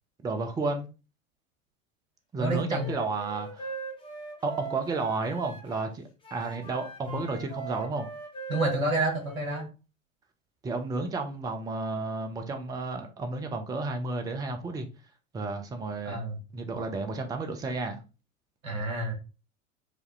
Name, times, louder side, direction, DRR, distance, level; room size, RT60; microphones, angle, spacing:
voice 1, 0.2-0.9 2.3-3.7 4.4-8.1 10.6-14.9 15.3-16.2 16.5-18.0, right 3 dB, 10° right, 0.5 m, -32 dB
voice 2, 2.4-2.9 8.5-9.7 16.0-16.4 18.6-19.1, right 2 dB, 75° right, 1.5 m, -29 dB
Wind instrument woodwind instrument, 2.7-5.9 6.2-9.6, right 3 dB, 10° left, 1.3 m, -41 dB
4.9 x 2.6 x 3.0 m
figure-of-eight pair, 80°, 41 cm